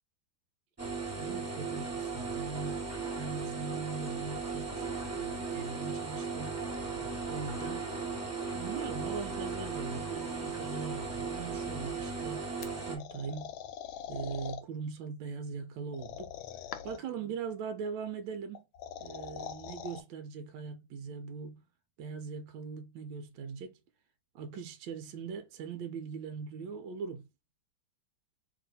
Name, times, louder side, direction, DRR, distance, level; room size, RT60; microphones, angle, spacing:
sound 1, 0.8-13.0, right 4 dB, 15° right, 0.5 m, -37 dB
voice 1, 1.2-2.9 3.1-4.9 5.2-7.8 8.5-13.5 14.1-16.4 16.8-18.6 19.0-21.6 22.0-23.8 24.3-27.2, right 5 dB, 75° right, 1.3 m, -41 dB
sound 2, 12.6-14.6 15.9-17.1 18.6-20.0, left 9 dB, 85° left, 1.4 m, -43 dB
3.1 x 2.8 x 4.0 m
omnidirectional pair, 2.2 m